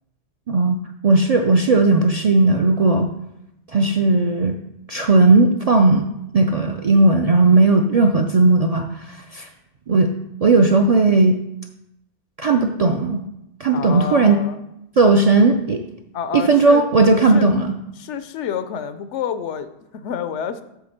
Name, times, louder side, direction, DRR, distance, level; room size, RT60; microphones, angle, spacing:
voice 1, 0.5-3.1 3.7-4.6 4.9-6.1 6.3-9.5 9.9-10.1 10.4-11.4 12.4-13.2 13.6-14.4 15.0-15.8 16.3-17.7, right 3 dB, 55° right, 4 dB, 0.4 m, -16 dB
voice 2, 13.7-14.6 16.1-16.9 17.3-17.5 18.0-20.6, left 8 dB, 85° left, 11 dB, 0.9 m, -28 dB
8.5 x 3.4 x 6.5 m, 0.84 s
omnidirectional pair, 1.2 m